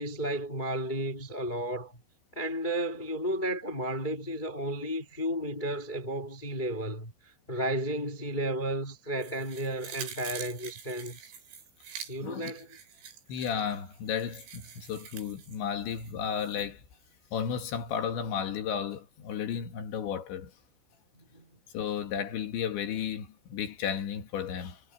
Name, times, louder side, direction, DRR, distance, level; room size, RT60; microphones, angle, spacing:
voice 1, 0.0-1.9 2.3-7.1 7.5-11.3 12.1-12.8 21.1-21.6, right 1 dB, 90° left, 0.4 m, -33 dB
sound 1, 9.2-16.7 17.0-17.1, right 7 dB, 80° right, 7.8 m, -46 dB
voice 2, 13.3-16.8 17.3-20.5 21.7-24.8, left 8 dB, 65° left, 4.3 m, -33 dB
omnidirectional pair, 5.9 m